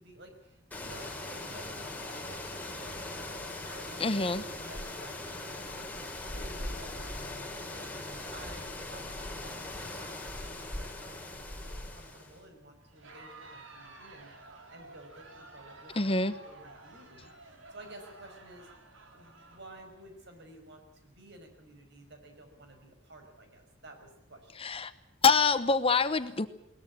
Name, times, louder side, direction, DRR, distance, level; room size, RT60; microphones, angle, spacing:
voice 1, 0.0-14.3 14.7-18.7 19.1-24.5, right 1 dB, 60° right, 5 dB, 5.7 m, -53 dB
sound 1, 0.7-12.4, left 2 dB, 10° left, 3.7 m, -40 dB
voice 2, 4.0-4.4 15.9-16.4 24.6-24.9 25.2-26.5, left 4 dB, 30° left, 12 dB, 0.9 m, -25 dB
Crowd, 12.9-20.4, right 2 dB, 80° right, 3.9 m, -52 dB
21.5 x 19.5 x 8.8 m, 0.81 s
head